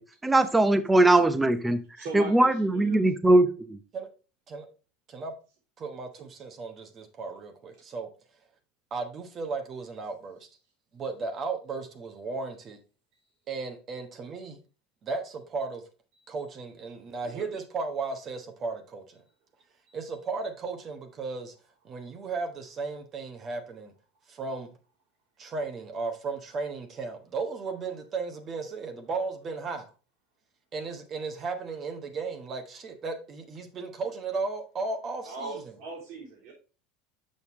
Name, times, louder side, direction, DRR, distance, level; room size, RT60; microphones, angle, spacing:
voice 1, 0.0-1.8 2.1-3.5, right 2 dB, 10° right, 0.7 m, -21 dB
voice 2, 2.0-3.0 16.2-16.3 17.2-17.5 19.9-20.0 35.2-36.5, right 4 dB, 65° right, 3.5 m, -40 dB
voice 3, 5.8-8.1 8.9-10.5 10.9-12.8 13.5-14.6 15.0-15.8 16.3-19.2 19.9-21.5 21.8-23.9 24.3-24.7 25.4-29.9 30.7-35.5, right 4 dB, 35° right, 1.1 m, -35 dB
6.5 x 5.4 x 3.1 m
supercardioid pair, 115°, 0 cm